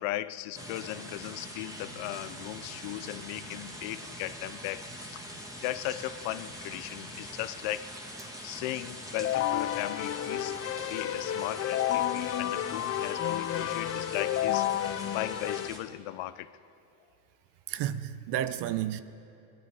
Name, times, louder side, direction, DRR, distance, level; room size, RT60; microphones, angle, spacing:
voice 1, 0.0-10.6 10.9-16.6, left 15 dB, 85° left, 0.7 m, -37 dB
sound 1, 0.5-15.8, equal, 5° right, 1.8 m, -43 dB
Keyboard (musical), 9.1-15.7, left 12 dB, 35° left, 0.4 m, -31 dB
voice 2, 17.7-19.0, right 11 dB, 65° right, 0.8 m, -31 dB
20.5 x 11.5 x 4.9 m
cardioid pair, 110°, 45 cm